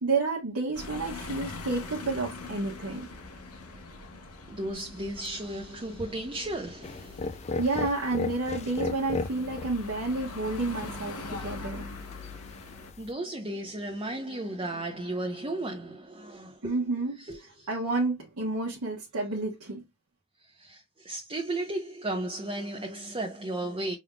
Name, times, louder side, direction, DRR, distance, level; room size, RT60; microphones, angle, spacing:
voice 1, 0.0-3.1 7.6-11.9 16.6-17.2 17.7-19.8, right 3 dB, 80° right, 1.3 m, -30 dB
sound 1, 0.7-12.9, left 3 dB, 85° left, 1.1 m, -42 dB
voice 2, 4.5-7.6 13.0-16.7 17.2-17.7 20.4-24.0, right 1 dB, 25° right, 0.7 m, -35 dB
sound 2, 6.8-13.1, left 3 dB, 30° left, 0.3 m, -37 dB
5.3 x 3.5 x 2.3 m
head